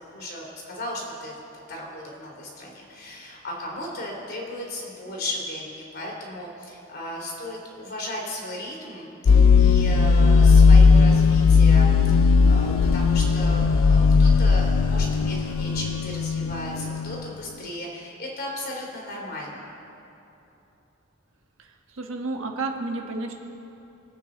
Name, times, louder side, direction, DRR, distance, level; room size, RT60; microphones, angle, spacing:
voice 1, 0.0-19.7, left 1 dB, 50° left, -2 dB, 2.9 m, -35 dB
sound 1, 9.3-17.2, left 5 dB, 85° left, 0.4 m, -17 dB
voice 2, 21.6-23.3, right 3 dB, 80° right, 3 dB, 1.3 m, -31 dB
23.5 x 8.7 x 3.8 m, 3.0 s
head